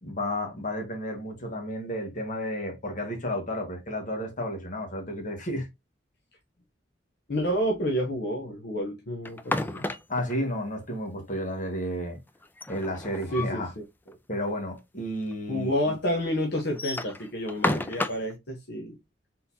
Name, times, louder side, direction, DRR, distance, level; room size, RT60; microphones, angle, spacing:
voice 1, 0.0-5.7 10.1-12.2 12.7-13.7 14.3-15.9, equal, 45° left, 1.5 m, -32 dB
voice 2, 7.3-9.9 13.3-14.2 15.5-19.0, equal, 60° left, 0.9 m, -29 dB
sound 1, 9.3-10.3 12.4-13.7 14.1-14.2 14.5-14.6 15.3-15.4 16.6-18.3, left 2 dB, 10° left, 0.4 m, -31 dB
4.2 x 3.8 x 2.7 m
head